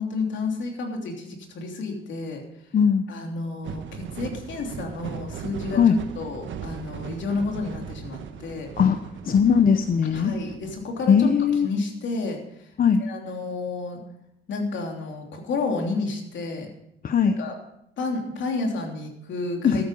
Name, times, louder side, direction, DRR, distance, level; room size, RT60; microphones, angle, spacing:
voice 1, 0.0-2.4 3.1-8.7 10.1-11.3 11.6-12.4 13.0-14.0 14.5-16.7 17.2-17.5 18.0-19.8, left 3 dB, 70° left, 2 dB, 3.1 m, -31 dB
voice 2, 2.7-3.0 5.7-6.0 8.8-9.0 9.3-10.3 11.1-11.7 12.8-13.0 17.0-17.3 19.6-19.8, left 7 dB, 45° left, 9 dB, 0.8 m, -19 dB
sound 1, 3.6-11.3, right 7 dB, 75° right, 1.3 m, -38 dB
13.0 x 9.6 x 5.4 m, 0.79 s
cardioid pair, 90°, 20 cm